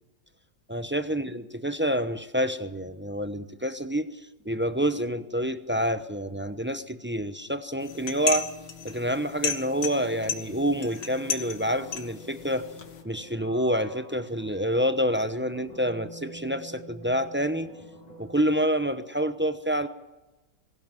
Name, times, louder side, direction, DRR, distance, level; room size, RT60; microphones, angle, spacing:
voice 1, 0.7-8.5 8.8-12.7 13.0-17.7 18.2-19.9, equal, 15° right, 10 dB, 0.4 m, -28 dB
sound 1, 7.8-13.0, left 6 dB, 90° left, 2.4 m, -34 dB
sound 2, 9.2-18.7, right 1 dB, 20° left, 4.5 m, -48 dB
22.5 x 17.0 x 9.0 m, 1.1 s
omnidirectional pair, 1.9 m